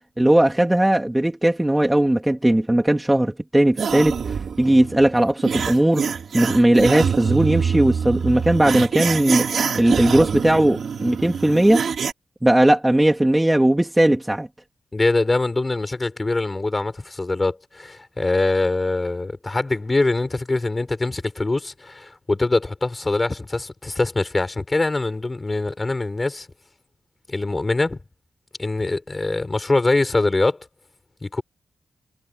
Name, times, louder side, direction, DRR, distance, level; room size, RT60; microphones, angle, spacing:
voice 1, 0.2-6.1 6.3-9.5 9.7-11.8 12.4-14.5, right 1 dB, 10° right, 3.2 m, -18 dB
sound 1, 3.8-12.1, right 6 dB, 70° right, 2.3 m, -25 dB
voice 2, 14.9-26.5 27.3-28.0 28.6-30.6 31.2-31.4, left 2 dB, 25° left, 5.6 m, -23 dB
cardioid pair, 90°, 0 cm